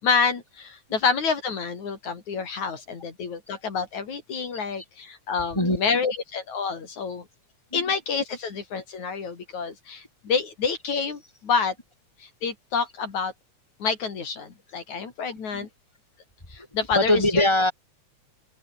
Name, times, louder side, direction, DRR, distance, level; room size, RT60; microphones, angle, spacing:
voice 1, 0.0-7.2 7.7-11.7 12.2-13.3 13.8-15.7 16.5-17.5, left 5 dB, 75° left, 4.9 m, -28 dB
voice 2, 5.5-6.0 7.7-7.8 15.5-15.7 17.0-17.7, left 1 dB, 10° left, 7.4 m, -22 dB
open air
omnidirectional pair, 3.4 m